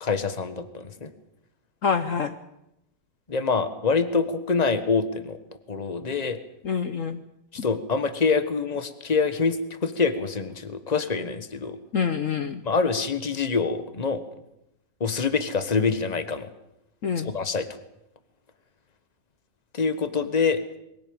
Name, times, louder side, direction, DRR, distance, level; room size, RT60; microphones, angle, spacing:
voice 1, 0.0-1.1 3.3-5.4 5.7-6.4 7.6-11.8 12.6-14.2 15.0-16.5 17.2-17.7 19.7-20.6, left 4 dB, 25° left, 11 dB, 1.4 m, -25 dB
voice 2, 1.8-2.3 6.6-7.2 11.9-12.6 17.0-17.3, left 6 dB, 55° left, 9 dB, 1.2 m, -26 dB
22.5 x 16.5 x 8.9 m, 0.85 s
omnidirectional pair, 1.7 m